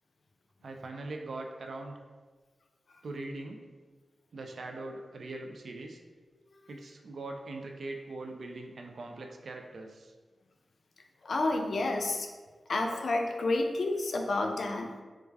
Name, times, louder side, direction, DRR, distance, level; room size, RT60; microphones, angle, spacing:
voice 1, 0.6-2.0 3.0-3.6 4.3-6.0 6.7-10.1, right 2 dB, 75° right, 3 dB, 0.4 m, -41 dB
voice 2, 11.2-12.3 12.7-14.9, left 2 dB, 70° left, 3 dB, 0.4 m, -30 dB
3.2 x 2.3 x 3.3 m, 1.4 s
wide cardioid pair, 100°, 0 cm